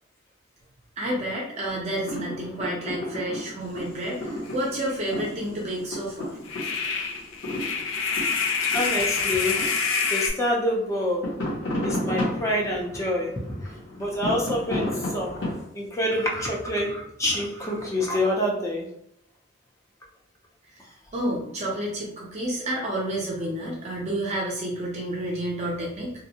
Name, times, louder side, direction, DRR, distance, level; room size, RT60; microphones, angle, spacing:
voice 1, 1.0-6.3 20.8-20.9 21.1-26.1, right 1 dB, 35° right, -3 dB, 0.5 m, -30 dB
sound 1, 1.7-10.4 10.7-15.6, left 1 dB, 65° left, 0.9 m, -33 dB
sound 2, 4.5-4.6 4.9-5.0 6.4-10.3, left 5 dB, 80° left, 0.4 m, -26 dB
voice 2, 8.6-9.7 10.1-11.3 11.8-13.6 14.0-15.4 15.7-18.9, left 1 dB, 15° left, -2 dB, 0.5 m, -27 dB
2.6 x 2.0 x 2.8 m, 0.73 s
head